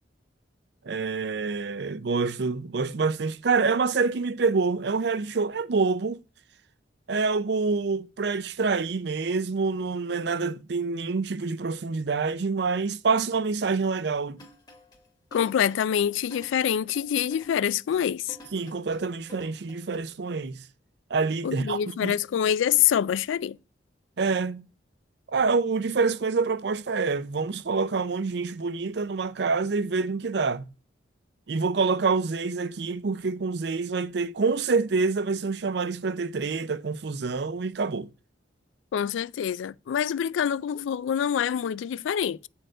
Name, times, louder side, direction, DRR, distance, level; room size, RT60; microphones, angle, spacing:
voice 1, 0.8-6.2 7.1-14.4 18.5-20.6 21.1-22.2 24.2-24.7 25.3-30.7 31.5-38.1, right 4 dB, 60° right, 0.5 m, -27 dB
sound 1, 14.4-20.0, left 1 dB, 20° left, 1.3 m, -51 dB
voice 2, 15.3-18.4 21.4-23.6 38.9-42.5, left 9 dB, 80° left, 0.3 m, -26 dB
7.6 x 4.5 x 4.8 m
head